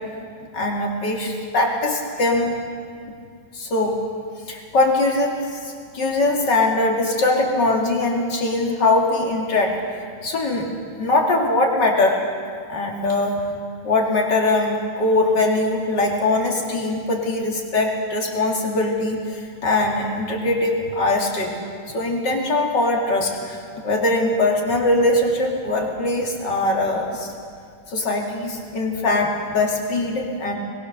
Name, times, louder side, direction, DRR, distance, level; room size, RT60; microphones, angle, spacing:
voice 1, 0.5-2.6 3.5-4.0 4.5-5.6 5.9-9.7 10.2-10.7 11.0-12.2 12.7-13.5 13.8-21.5 21.9-27.3 27.9-30.6, left 2 dB, 55° left, 1 dB, 3.2 m, -21 dB
22.0 x 21.0 x 6.7 m, 2.2 s
omnidirectional pair, 2.3 m